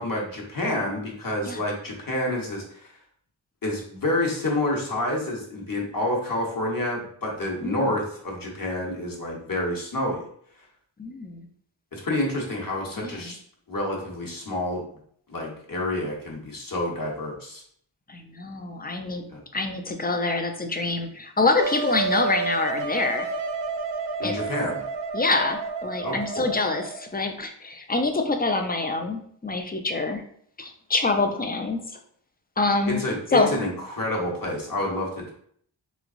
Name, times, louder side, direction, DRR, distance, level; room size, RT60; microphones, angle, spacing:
voice 1, 0.0-2.6 3.6-10.3 11.9-13.4 13.7-14.8 15.3-17.6 19.3-19.4 24.2-24.8 26.0-26.5 32.9-35.3, left 1 dB, 45° left, -1 dB, 1.0 m, -28 dB
voice 2, 7.6-7.9 11.0-11.5 13.0-13.3 18.1-19.2 19.5-23.3 24.2-24.3 25.1-30.2 30.6-31.8 32.6-33.0 33.3-33.6, left 3 dB, 20° left, 5 dB, 0.4 m, -26 dB
Wind instrument woodwind instrument, 21.6-27.1, right 4 dB, 65° right, 0.5 m, -30 dB
3.4 x 3.1 x 2.5 m, 0.62 s
wide cardioid pair, 95°, 46 cm